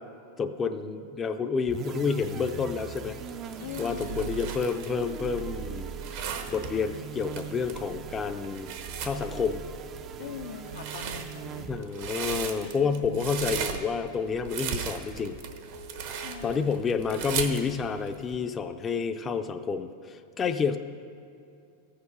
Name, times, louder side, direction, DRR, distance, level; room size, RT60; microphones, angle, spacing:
voice 1, 0.4-3.2 3.8-5.9 6.5-8.7 9.0-9.6 11.7-15.4 16.4-20.8, left 5 dB, 20° left, 7 dB, 0.5 m, -29 dB
sound 1, 0.8-17.9, right 3 dB, 85° right, 1.8 m, -48 dB
sound 2, 1.6-12.1, right 9 dB, 35° right, 0.5 m, -41 dB
sound 3, 2.1-18.4, right 7 dB, 60° right, 1.0 m, -37 dB
voice 2, 3.6-4.3 10.2-11.8 12.7-13.4 16.1-16.9, left 7 dB, 85° left, 7 dB, 0.6 m, -41 dB
14.0 x 6.8 x 5.6 m, 2.6 s
supercardioid pair, 135°, 0 cm